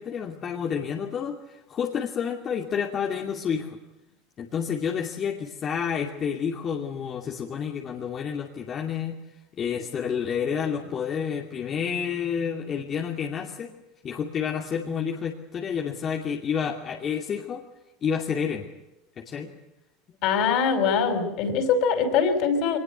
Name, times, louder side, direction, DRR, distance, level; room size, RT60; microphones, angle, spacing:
voice 1, 0.0-3.8 4.4-9.2 9.6-13.7 14.0-17.6 18.0-18.7 19.2-19.5, left 7 dB, 35° left, 1 dB, 2.6 m, -29 dB
voice 2, 20.2-22.8, left 6 dB, 60° left, 8 dB, 5.3 m, -23 dB
22.5 x 20.0 x 8.3 m, 0.94 s
supercardioid pair, 105°, 0 cm